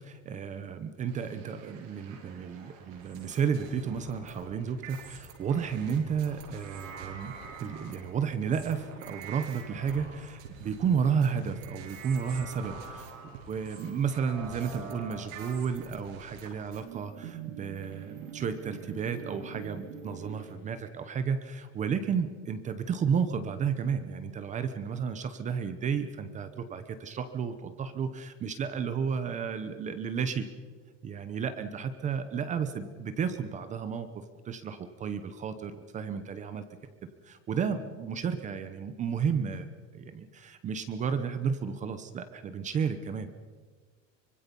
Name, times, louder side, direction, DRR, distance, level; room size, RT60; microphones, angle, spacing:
voice 1, 0.0-7.3 7.6-13.1 13.5-30.5 31.0-36.6 37.2-43.3, right 6 dB, 20° right, 10 dB, 0.9 m, -32 dB
sound 1, 1.1-20.5, right 5 dB, 80° right, 6.9 m, -45 dB
25.0 x 24.5 x 5.4 m, 1.5 s
cardioid pair, 180°, 39 cm